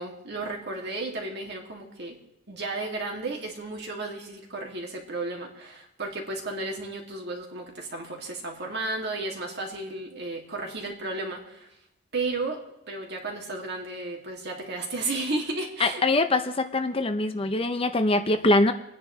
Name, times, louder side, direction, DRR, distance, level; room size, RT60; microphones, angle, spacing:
voice 1, 0.0-2.2 2.5-11.7 12.1-12.6 12.9-16.0 17.4-17.5, right 2 dB, 55° right, 1 dB, 2.4 m, -33 dB
voice 2, 15.8-18.7, left 2 dB, 30° left, 8 dB, 0.7 m, -23 dB
29.5 x 9.9 x 3.2 m, 0.91 s
head